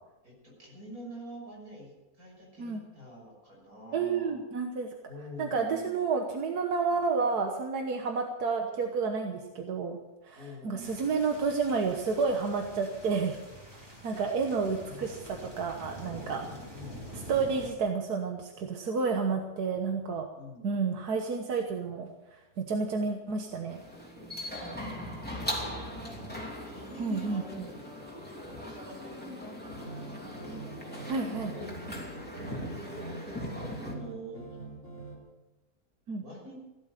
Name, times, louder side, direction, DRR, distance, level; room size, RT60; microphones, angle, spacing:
voice 1, 0.6-1.9 2.2-4.4 5.1-6.0 10.4-11.3 14.9-15.2 16.0-17.1 20.3-20.8 26.6-27.7 28.4-30.6 30.9-32.1 32.4-34.4 36.2-36.6, equal, 70° right, -2 dB, 6.7 m, -47 dB
voice 2, 3.9-4.9 5.4-10.0 10.2-13.4 14.0-16.5 17.1-20.3 20.6-23.8 27.0-27.7 31.1-31.5 36.1-36.2, right 4 dB, 90° right, 3 dB, 1.7 m, -30 dB
sound 1, 10.8-17.7, equal, 15° right, 3.5 m, -46 dB
sound 2, 23.7-33.9, left 1 dB, 5° left, 3.0 m, -40 dB
sound 3, 29.7-35.2, right 2 dB, 35° right, 3.7 m, -44 dB
16.0 x 12.0 x 6.7 m, 1.1 s
omnidirectional pair, 1.6 m